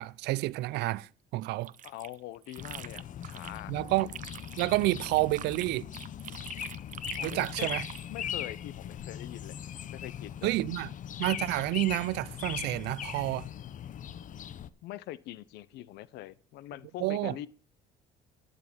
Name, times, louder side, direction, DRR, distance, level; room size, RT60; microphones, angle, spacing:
voice 1, 0.0-1.7 3.7-4.1 4.6-5.9 7.2-7.8 10.4-10.9 11.2-13.5 17.0-17.3, right 19 dB, 85° right, 0.5 m, -29 dB
sound 1, 1.4-3.6 3.9-8.1, right 10 dB, 50° right, 0.8 m, -45 dB
voice 2, 1.8-3.7 7.2-7.7 8.1-9.5 9.9-10.5 14.8-17.5, left 15 dB, 90° left, 0.9 m, -43 dB
sound 2, 2.6-14.7, left 9 dB, 50° left, 0.9 m, -40 dB
14.0 x 9.8 x 6.2 m
cardioid pair, 110°, 17 cm